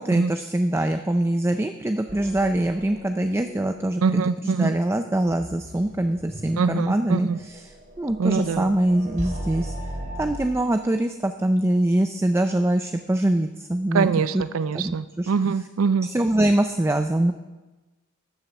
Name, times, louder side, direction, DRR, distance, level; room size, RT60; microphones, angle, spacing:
voice 1, 0.0-7.6 8.0-9.7 10.2-14.1 14.3-14.4 14.7-15.3 16.0-17.3, right 1 dB, 15° right, 7 dB, 0.4 m, -23 dB
sound 1, 2.1-10.4, equal, 40° right, 4.0 m, -38 dB
voice 2, 4.0-4.7 6.6-7.4 8.2-8.8 13.9-16.1, right 5 dB, 80° right, 15 dB, 0.4 m, -23 dB
13.0 x 7.3 x 6.8 m, 1.2 s
head